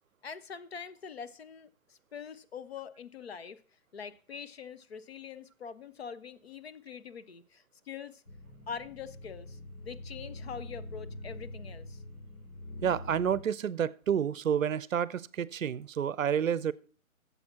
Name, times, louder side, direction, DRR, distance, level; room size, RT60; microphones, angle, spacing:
voice 1, 0.2-3.6 3.9-8.2 8.7-12.0, left 6 dB, 50° left, 0.6 m, -44 dB
sound 1, 8.3-13.4, left 1 dB, 80° left, 2.5 m, -44 dB
voice 2, 12.8-16.7, right 8 dB, 70° right, 0.6 m, -29 dB
8.7 x 7.1 x 5.6 m
figure-of-eight pair, 140°, 41 cm